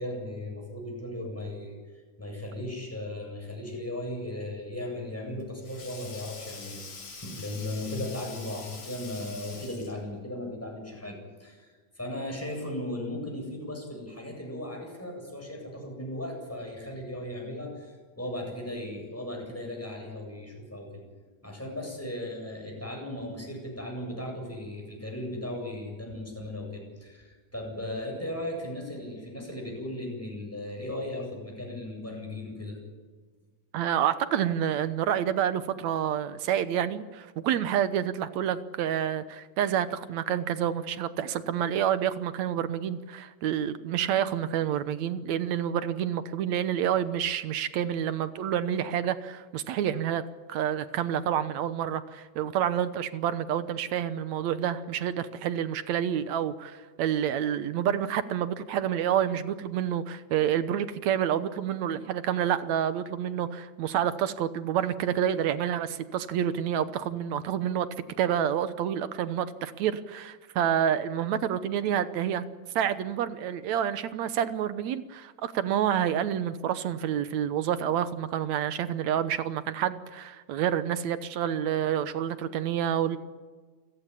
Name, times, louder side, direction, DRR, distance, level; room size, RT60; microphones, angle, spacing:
voice 1, 0.0-1.8 2.2-6.8 7.2-21.0 21.4-32.8, left 1 dB, 5° left, 0 dB, 7.9 m, -37 dB
Sink (filling or washing), 5.0-10.1, left 4 dB, 65° left, 5.0 m, -45 dB
voice 2, 33.7-67.9 68.2-72.4 72.8-83.2, right 9 dB, 70° right, 13 dB, 2.1 m, -28 dB
28.5 x 16.0 x 10.0 m, 1.4 s
omnidirectional pair, 3.5 m